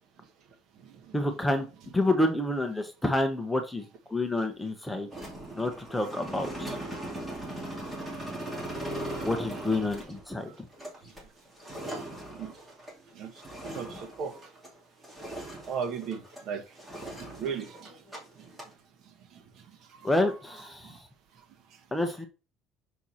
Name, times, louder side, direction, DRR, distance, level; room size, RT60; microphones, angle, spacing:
voice 1, 1.1-1.7 1.9-5.1 5.5-6.8 9.2-10.7 20.0-21.1 21.9-22.3, left 1 dB, 5° left, 0.9 m, -28 dB
sound 1, 5.1-14.8 15.0-16.4 16.8-18.2 18.4-18.7, right 1 dB, 10° right, 2.3 m, -39 dB
voice 2, 13.6-14.3 15.7-16.6 17.1-17.9 20.3-20.4, right 6 dB, 50° right, 1.3 m, -35 dB
6.2 x 4.4 x 4.2 m
cardioid pair, 145°, 0 cm